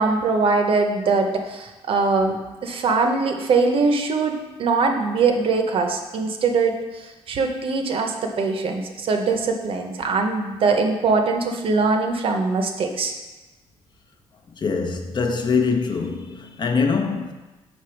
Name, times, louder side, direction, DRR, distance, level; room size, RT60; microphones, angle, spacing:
voice 1, 0.0-13.1, right 4 dB, 55° right, 0.7 m, -22 dB
voice 2, 14.5-17.3, left 5 dB, 45° left, 0.7 m, -23 dB
5.2 x 4.4 x 4.5 m
cardioid pair, 105°, 11 cm